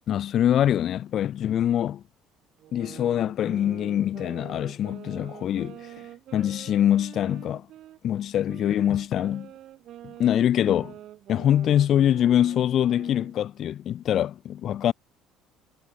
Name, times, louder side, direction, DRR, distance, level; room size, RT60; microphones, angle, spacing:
voice 1, 0.1-2.0 2.7-5.9 6.3-7.7 8.0-9.5 10.0-11.0 11.3-14.9, left 10 dB, 55° left, 0.8 m, -24 dB
sound 1, 2.6-8.0 8.5-13.4, right 13 dB, 60° right, 3.2 m, -45 dB
supercardioid pair, 85°, 0 cm